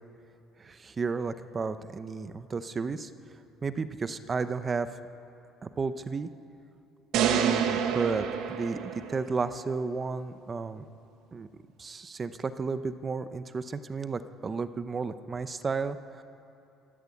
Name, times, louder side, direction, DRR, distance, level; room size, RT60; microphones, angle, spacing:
voice 1, 0.6-3.1 3.6-4.9 5.6-6.3 7.1-10.8 11.3-11.5 11.8-16.2, right 4 dB, 25° right, 11 dB, 0.8 m, -33 dB
sound 1, 7.1-9.4, right 8 dB, 75° right, 1.5 m, -28 dB
25.5 x 12.5 x 8.5 m, 2.8 s
cardioid pair, 125°, 0 cm